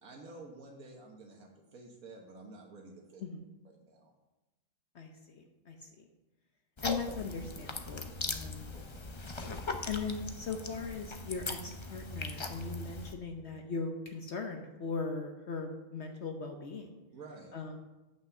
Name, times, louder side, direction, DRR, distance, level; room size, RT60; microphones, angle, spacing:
voice 1, 0.0-3.2 3.8-4.1 8.7-9.1 17.1-17.5, right 3 dB, 85° right, 0 dB, 1.6 m, -51 dB
voice 2, 4.9-6.1 6.8-8.7 9.9-16.9 17.5-17.8, left 4 dB, 55° left, 4 dB, 1.1 m, -39 dB
sound 1, 6.8-13.1, left 3 dB, 30° left, 0.5 m, -40 dB
9.2 x 5.7 x 7.0 m, 1.1 s
omnidirectional pair, 1.5 m